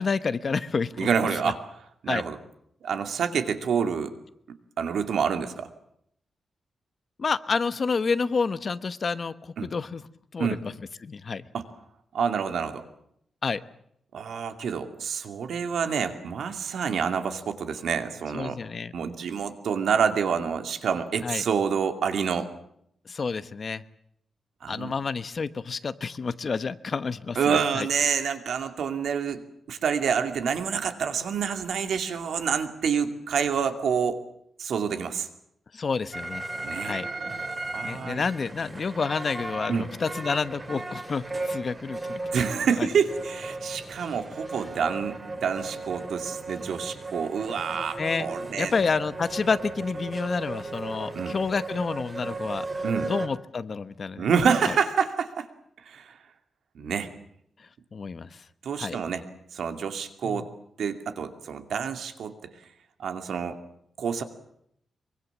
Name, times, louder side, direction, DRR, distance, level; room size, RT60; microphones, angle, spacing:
voice 1, 0.0-1.1 1.4-1.5 2.1-2.2 7.2-10.1 10.3-11.4 13.4-13.6 18.3-18.9 21.2-21.4 23.1-23.8 24.7-27.9 35.7-36.4 36.8-37.1 37.8-42.2 42.8-42.9 48.0-48.3 48.6-54.3 54.7-54.8 57.9-58.4 58.8-59.0 60.2-60.4, left 5 dB, 40° left, 13 dB, 1.0 m, -29 dB
voice 2, 1.0-1.6 2.0-2.4 2.8-4.1 4.8-5.7 9.6-9.7 10.4-10.6 11.5-11.6 12.1-12.8 14.1-18.6 18.9-22.5 24.6-24.9 27.4-29.4 29.7-34.2 34.6-35.3 36.6-37.0 37.7-38.2 39.7-39.9 42.3-48.7 51.1-51.3 52.8-53.1 54.2-55.5 55.9-56.1 56.7-57.1 58.6-59.2 59.5-60.5 60.8-62.4 63.0-63.6 64.0-64.2, right 6 dB, 75° right, 8 dB, 2.5 m, -27 dB
sound 1, 36.1-53.3, right 2 dB, 20° right, 2.3 m, -36 dB
24.5 x 24.0 x 7.3 m, 0.72 s
wide cardioid pair, 160°, 0 cm